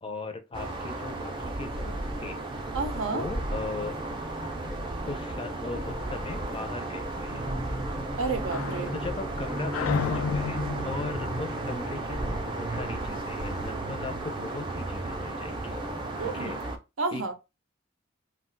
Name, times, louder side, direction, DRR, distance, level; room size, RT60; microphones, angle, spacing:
voice 1, 0.0-2.4 3.1-4.0 5.1-7.4 8.9-10.6 10.8-15.7 16.2-16.6 17.1-17.3, left 3 dB, 25° left, 0.5 m, -38 dB
sound 1, 0.5-16.8, right 2 dB, 25° right, 0.5 m, -33 dB
voice 2, 2.7-3.3 8.2-8.9 16.2-16.6 17.0-17.3, right 4 dB, 70° right, 0.5 m, -30 dB
sound 2, 7.3-12.7, left 6 dB, 85° left, 0.3 m, -35 dB
2.4 x 2.2 x 3.8 m
head